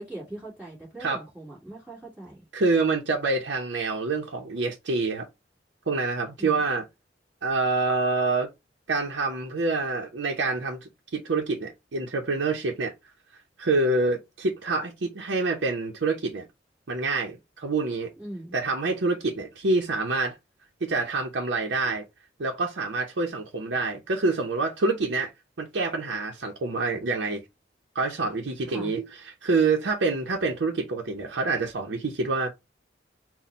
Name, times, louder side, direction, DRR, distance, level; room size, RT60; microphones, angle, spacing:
voice 1, 0.0-2.4 6.4-6.6 18.2-18.5 28.7-28.9, right 1 dB, 5° right, 1.9 m, -40 dB
voice 2, 2.5-5.3 5.9-6.8 7.4-8.5 8.9-12.9 13.6-16.5 16.9-18.1 18.5-20.3 20.8-22.0 22.4-25.3 25.6-27.4 27.9-29.0 29.4-32.5, right 3 dB, 85° right, 0.7 m, -26 dB
4.2 x 2.2 x 4.0 m
head